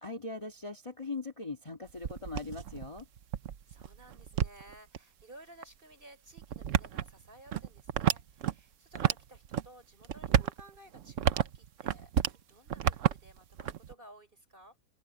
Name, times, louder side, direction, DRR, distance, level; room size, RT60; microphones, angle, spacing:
voice 1, 0.0-3.1, left 3 dB, 20° left, 1.7 m, -40 dB
sound 1, 1.9-5.0 5.6-5.7 6.4-8.5 8.9-9.7 10.0-12.4 12.7-13.9, right 10 dB, 60° right, 1.0 m, -31 dB
voice 2, 3.7-14.8, right 1 dB, 30° right, 5.4 m, -56 dB
open air
omnidirectional pair, 1.7 m